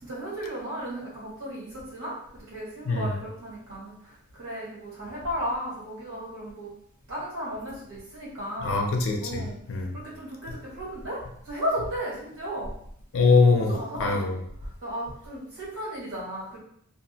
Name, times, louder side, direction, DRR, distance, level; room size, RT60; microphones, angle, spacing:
voice 1, 0.0-3.9 4.4-6.7 7.1-8.8 9.2-9.5 9.9-11.2 11.4-12.7 13.6-14.2 14.8-16.6, equal, 85° right, -6 dB, 1.5 m, -34 dB
voice 2, 2.9-3.2 8.6-10.0 13.1-13.7 14.0-14.4, left 4 dB, 65° left, 3 dB, 0.5 m, -23 dB
2.5 x 2.1 x 2.7 m, 0.67 s
head